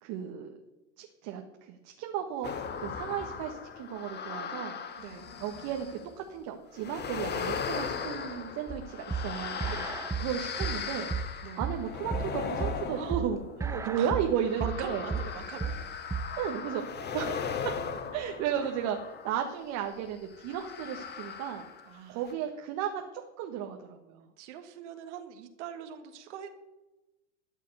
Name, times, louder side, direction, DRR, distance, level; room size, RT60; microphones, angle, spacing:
voice 1, 0.0-0.5 1.0-4.8 5.4-9.7 10.2-11.1 11.6-13.4 13.8-15.0 16.4-17.7 18.1-21.6 22.1-24.3, right 9 dB, 50° right, 3 dB, 1.7 m, -34 dB
sound 1, 2.4-6.1 6.8-19.6 20.4-22.0 22.3-22.4, left 6 dB, 25° left, 1.5 m, -38 dB
voice 2, 5.0-5.3 9.7-9.9 11.4-11.6 12.9-13.2 13.6-14.1 14.6-15.8 21.8-22.3 24.4-26.5, right 9 dB, 65° right, 7 dB, 1.8 m, -42 dB
sound 2, 8.7-16.4, right 5 dB, 10° right, 0.7 m, -34 dB
13.0 x 7.4 x 8.0 m, 1.0 s
hypercardioid pair, 105°, 38 cm